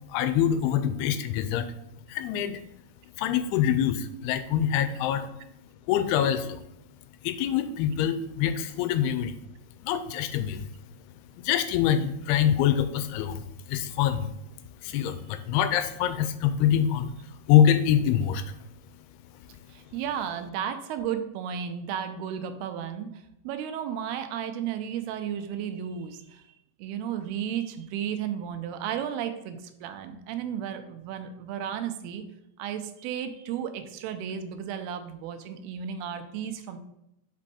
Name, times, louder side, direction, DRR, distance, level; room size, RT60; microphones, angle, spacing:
voice 1, 0.1-1.7 2.1-2.6 3.2-5.3 5.9-6.6 7.2-9.3 9.8-10.7 11.4-14.3 14.8-17.1 17.5-18.4, left 9 dB, 85° left, 10 dB, 2.5 m, -25 dB
voice 2, 19.7-26.5 26.8-32.2 32.6-36.8, right 9 dB, 85° right, 8 dB, 2.5 m, -34 dB
6.2 x 5.2 x 4.2 m, 0.81 s
omnidirectional pair, 4.6 m